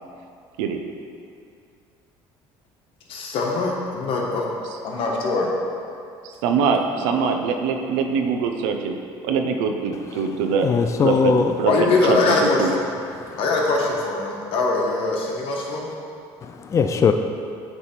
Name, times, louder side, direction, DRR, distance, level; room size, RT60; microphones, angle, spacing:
voice 1, 3.1-4.5 4.8-5.5 11.7-12.8 13.4-15.9, left 3 dB, 65° left, -1 dB, 1.2 m, -22 dB
voice 2, 6.2-8.9 9.2-10.7 11.0-11.3 11.6-12.7, right 6 dB, 90° right, 5 dB, 0.6 m, -23 dB
voice 3, 10.6-11.6 13.1-13.4 16.4-17.1, left 6 dB, 30° left, 6 dB, 0.4 m, -21 dB
8.5 x 3.4 x 4.4 m, 2.5 s
cardioid pair, 100°, 10 cm